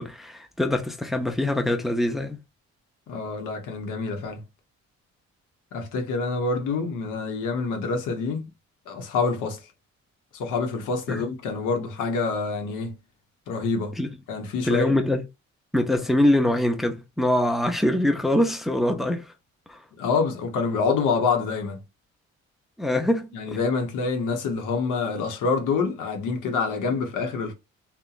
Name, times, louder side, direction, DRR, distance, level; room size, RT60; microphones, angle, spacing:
voice 1, 0.0-2.4 11.1-11.2 14.0-14.1 14.7-15.2 15.7-19.3 19.7-19.8 22.8-23.3, left 1 dB, ahead, 0.5 m, -23 dB
voice 2, 3.1-4.5 5.7-8.5 8.9-9.7 10.3-12.9 13.5-14.0 14.3-14.9 20.0-21.8 23.3-27.5, left 4 dB, 85° left, 0.8 m, -26 dB
2.8 x 2.2 x 2.3 m
cardioid pair, 90°, 30 cm